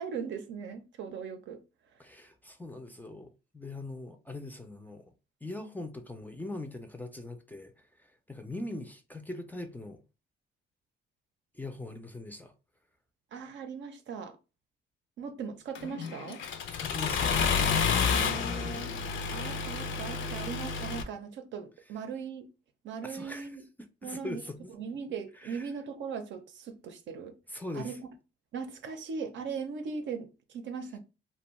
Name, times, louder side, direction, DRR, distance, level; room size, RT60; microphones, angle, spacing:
voice 1, 0.0-1.6 8.6-8.8 13.3-14.4 15.2-16.4 18.0-19.0 19.3-22.5 22.8-23.6 24.0-24.4 24.8-27.4 27.7-28.0 28.5-31.0, right 6 dB, 70° right, 0.6 m, -39 dB
voice 2, 2.0-5.1 5.4-7.7 8.3-10.0 11.5-12.5 16.8-17.4 23.0-23.5 24.0-24.7 25.4-25.7 27.5-28.0, left 2 dB, 10° left, 0.4 m, -41 dB
Accelerating revving vroom, 15.8-21.0, left 6 dB, 75° left, 0.5 m, -30 dB
2.5 x 2.2 x 2.9 m
cardioid pair, 90°, 20 cm